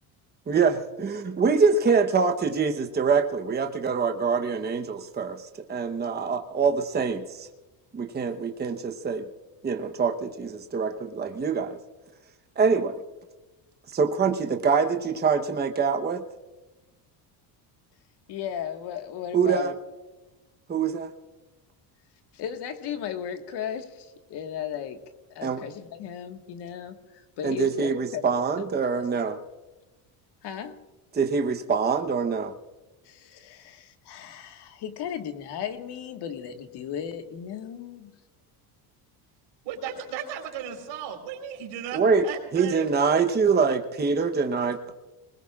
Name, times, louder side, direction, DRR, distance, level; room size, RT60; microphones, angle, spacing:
voice 1, 0.5-7.5 7.9-9.3 9.6-11.8 12.6-13.0 13.9-16.2 19.3-19.7 20.7-21.1 25.4-25.6 27.4-29.4 31.1-32.5 41.9-42.2 42.5-44.9, right 5 dB, 20° right, 5 dB, 1.0 m, -24 dB
voice 2, 18.3-19.7 22.3-25.0 25.3-28.2 28.6-28.7 30.4-30.8 33.0-38.1, left 8 dB, 65° left, 6 dB, 1.7 m, -35 dB
voice 3, 39.6-42.9 43.1-43.2 43.7-43.8, right 8 dB, 85° right, 2 dB, 4.3 m, -36 dB
27.0 x 21.0 x 2.5 m, 1.1 s
cardioid pair, 110°, 43 cm